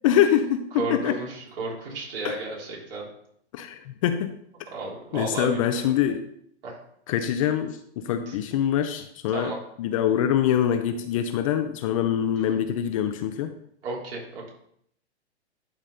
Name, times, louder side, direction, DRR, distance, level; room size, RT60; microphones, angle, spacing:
voice 1, 0.0-1.2 2.2-2.4 3.5-4.3 5.1-6.2 7.1-13.5, left 10 dB, 30° left, 8 dB, 0.4 m, -24 dB
voice 2, 0.7-3.0 4.7-5.8 6.6-6.8 8.3-8.4 9.3-9.6 13.8-14.5, right 3 dB, 55° right, -3 dB, 3.4 m, -33 dB
11.5 x 4.0 x 3.8 m, 0.69 s
hypercardioid pair, 130°, 34 cm